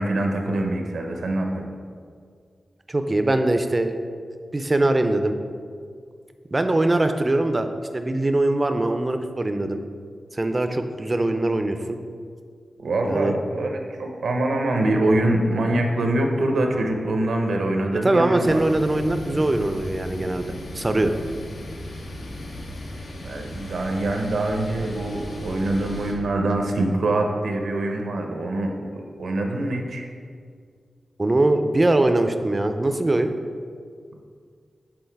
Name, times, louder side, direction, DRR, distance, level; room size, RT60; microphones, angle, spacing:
voice 1, 0.0-1.6 12.8-18.6 23.2-30.1, right 1 dB, 85° right, 3 dB, 0.8 m, -24 dB
voice 2, 2.9-3.9 4.5-5.3 6.5-7.7 7.9-9.8 10.3-12.0 13.0-13.3 18.0-21.1 31.2-33.3, right 2 dB, 25° right, 7 dB, 0.4 m, -22 dB
sound 1, 18.4-26.1, left 1 dB, 75° left, 0.9 m, -36 dB
7.8 x 3.7 x 4.6 m, 2.1 s
wide cardioid pair, 100°, 0 cm